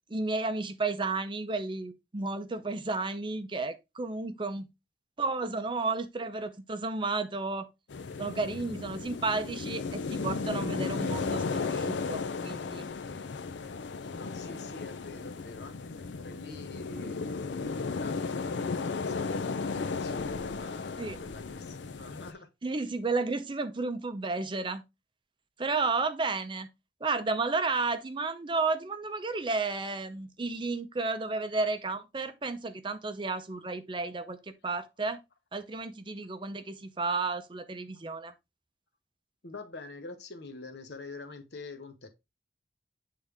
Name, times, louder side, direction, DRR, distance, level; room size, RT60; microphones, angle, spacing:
voice 1, 0.1-4.7 5.2-7.7 8.2-12.9 21.0-21.2 22.6-24.8 25.6-26.7 27.0-34.4 34.6-35.2 35.5-38.3, right 3 dB, 25° right, 0.5 m, -32 dB
sound 1, 7.9-22.3, left 4 dB, 85° left, 0.5 m, -35 dB
voice 2, 14.1-22.5 39.4-42.1, left 3 dB, 70° left, 1.1 m, -45 dB
8.1 x 3.7 x 3.4 m
head